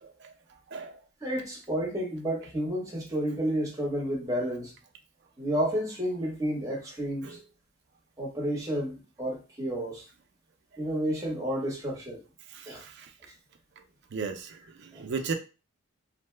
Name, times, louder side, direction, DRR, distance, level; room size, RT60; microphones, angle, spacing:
voice 1, 1.2-4.7 5.4-7.4 8.2-10.0 10.8-12.2 12.7-12.8 14.9-15.0, equal, 15° right, -3 dB, 0.9 m, -31 dB
voice 2, 12.5-13.1 14.1-15.3, right 5 dB, 55° right, 6 dB, 0.4 m, -35 dB
2.6 x 2.1 x 3.2 m, 0.31 s
head